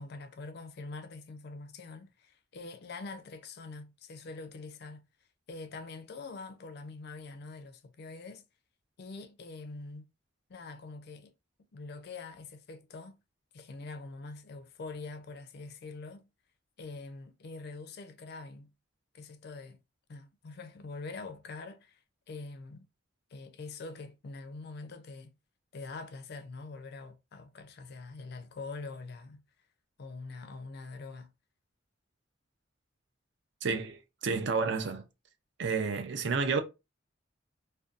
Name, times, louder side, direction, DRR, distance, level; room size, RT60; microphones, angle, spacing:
voice 1, 0.0-5.0 5.5-8.4 9.0-10.1 10.5-11.3 11.7-13.2 13.5-16.3 16.8-18.7 19.1-19.8 20.1-22.9 23.3-25.3 25.7-29.4 30.0-31.3, left 3 dB, 55° left, 0.4 m, -44 dB
voice 2, 33.6-35.1 35.6-36.6, right 4 dB, 60° right, 0.5 m, -30 dB
2.6 x 2.2 x 2.4 m
head